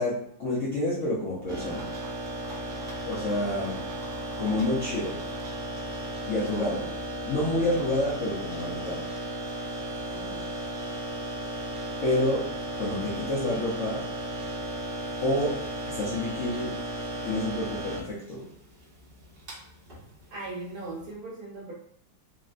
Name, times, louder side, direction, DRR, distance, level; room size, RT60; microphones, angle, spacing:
voice 1, 0.0-1.8 3.0-3.8 4.4-5.1 6.3-6.9 7.3-9.1 12.0-12.4 12.8-14.0 15.2-15.6 15.9-16.8 17.2-18.5, left 1 dB, 60° left, -6 dB, 0.8 m, -28 dB
sound 1, 1.5-21.1, right 1 dB, 40° right, 0.9 m, -35 dB
voice 2, 6.6-6.9 10.1-10.5 20.3-21.7, right 2 dB, 60° right, -5 dB, 1.3 m, -39 dB
3.7 x 2.1 x 2.5 m, 0.66 s
omnidirectional pair, 1.9 m